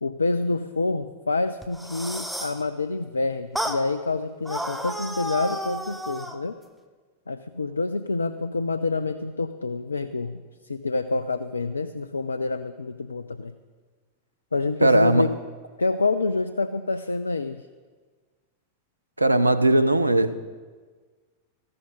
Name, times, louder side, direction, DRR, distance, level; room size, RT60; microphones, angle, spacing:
voice 1, 0.0-6.5 7.3-13.5 14.5-15.3 15.8-17.7, left 3 dB, 75° left, 0.4 m, -27 dB
sound 1, 1.6-2.6 3.5-3.8 4.4-6.4, right 1 dB, ahead, 0.9 m, -32 dB
voice 2, 14.8-15.3 19.2-20.4, right 1 dB, 85° right, 0.6 m, -19 dB
14.0 x 11.0 x 5.4 m
figure-of-eight pair, 90°, 0 cm